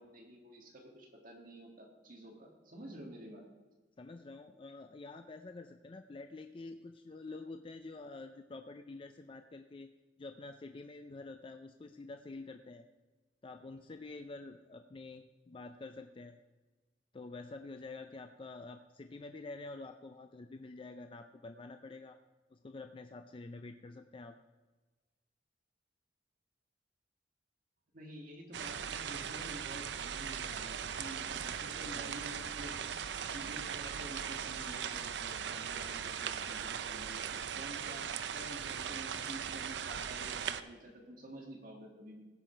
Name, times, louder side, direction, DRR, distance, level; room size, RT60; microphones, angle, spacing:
voice 1, 0.0-3.4 27.9-32.7 33.3-38.0 38.3-42.2, right 1 dB, 50° right, 1 dB, 1.9 m, -50 dB
voice 2, 4.0-9.9 10.2-12.8 13.4-16.4 17.1-22.2 22.5-24.4 31.9-32.1, left 3 dB, 30° left, 7 dB, 0.4 m, -48 dB
sound 1, 28.5-40.6, right 8 dB, 70° right, 0.5 m, -39 dB
16.0 x 6.0 x 4.5 m, 1.2 s
head